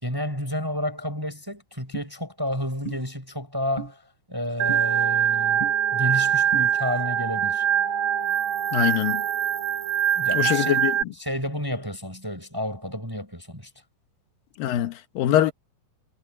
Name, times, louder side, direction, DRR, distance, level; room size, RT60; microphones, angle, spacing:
voice 1, 0.0-4.0 4.3-7.6 10.1-10.8 11.1-13.7, left 1 dB, 5° right, 6.0 m, -31 dB
sound 1, 1.9-2.1 2.8-3.0 3.8-3.9 4.7-4.8 5.6-5.7 6.5-6.7, right 2 dB, 35° left, 3.8 m, -33 dB
Organ, 4.6-11.0, right 9 dB, 65° right, 2.1 m, -23 dB
voice 2, 8.7-9.2 10.3-10.9 14.6-15.5, left 12 dB, 80° left, 2.9 m, -23 dB
omnidirectional pair, 4.1 m